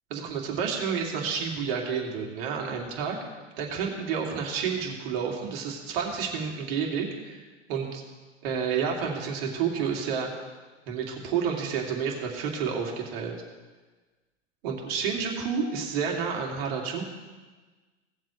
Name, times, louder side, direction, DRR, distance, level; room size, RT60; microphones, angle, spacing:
voice 1, 0.1-3.2 3.6-8.0 8.4-10.3 10.9-13.3 14.6-17.0, right 6 dB, 55° right, 0 dB, 2.6 m, -30 dB
18.0 x 7.4 x 3.2 m, 1.3 s
hypercardioid pair, 105°, 36 cm